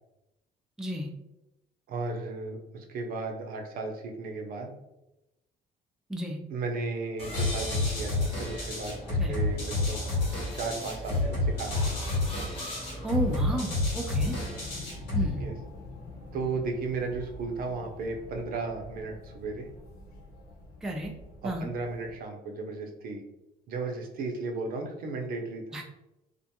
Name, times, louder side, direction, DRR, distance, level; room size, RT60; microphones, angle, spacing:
voice 1, 0.8-1.1 6.1-6.4 9.2-9.4 13.0-14.4 15.1-15.4 20.8-21.1 21.4-21.7 25.7-25.8, right 1 dB, 5° right, 2 dB, 0.3 m, -32 dB
voice 2, 1.9-4.7 6.5-10.0 10.5-11.8 15.4-15.5 16.3-19.7 21.4-23.2 23.7-25.8, right 3 dB, 60° right, 3 dB, 0.6 m, -35 dB
sound 1, 7.2-14.6, right 1 dB, 35° left, 0.9 m, -40 dB
sound 2, 7.3-15.3, left 2 dB, 90° left, 1.3 m, -30 dB
sound 3, 14.2-22.2, left 2 dB, 65° left, 1.0 m, -46 dB
2.4 x 2.2 x 2.8 m, 0.91 s
cardioid pair, 110°, 17 cm